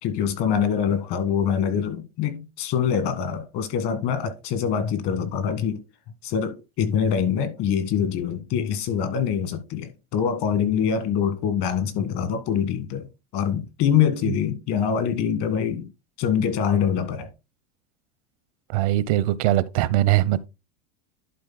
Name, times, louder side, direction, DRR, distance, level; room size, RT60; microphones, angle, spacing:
voice 1, 0.0-5.8 6.2-15.9 16.2-17.3, left 8 dB, 55° left, 1.6 m, -24 dB
voice 2, 18.7-20.5, right 15 dB, 75° right, 0.7 m, -21 dB
11.0 x 4.1 x 4.0 m
supercardioid pair, 150°, 19 cm